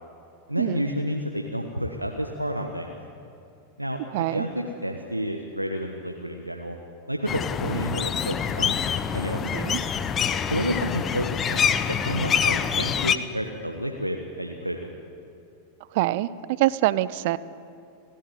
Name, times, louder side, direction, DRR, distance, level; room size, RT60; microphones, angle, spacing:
voice 1, 0.5-2.9 3.8-4.0 4.3-6.8 7.1-8.8 9.1-9.7 10.5-14.9, equal, 85° right, 3 dB, 1.2 m, -30 dB
voice 2, 4.1-4.5 9.4-9.8 15.9-16.3 16.6-17.4, right 16 dB, 50° right, 18 dB, 0.6 m, -24 dB
sound 1, 7.3-13.2, left 7 dB, 25° left, 0.9 m, -26 dB
29.5 x 12.0 x 7.8 m, 2.5 s
figure-of-eight pair, 90°, 0 cm